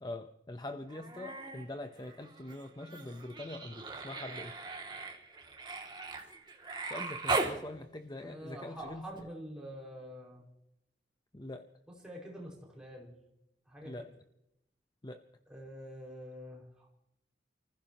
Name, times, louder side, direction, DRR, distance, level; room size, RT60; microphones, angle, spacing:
voice 1, 0.0-4.6 6.9-9.3 11.3-11.7 13.8-14.1 15.0-15.2, left 1 dB, 25° left, 7 dB, 0.8 m, -44 dB
Human voice, 0.9-1.7 2.0-7.6 9.2-9.3, right 3 dB, 25° right, 2.5 m, -38 dB
voice 2, 8.2-10.4 12.0-13.1 13.7-14.1 15.5-16.9, equal, 5° right, -3 dB, 5.5 m, -46 dB
30.0 x 15.0 x 3.0 m, 0.84 s
head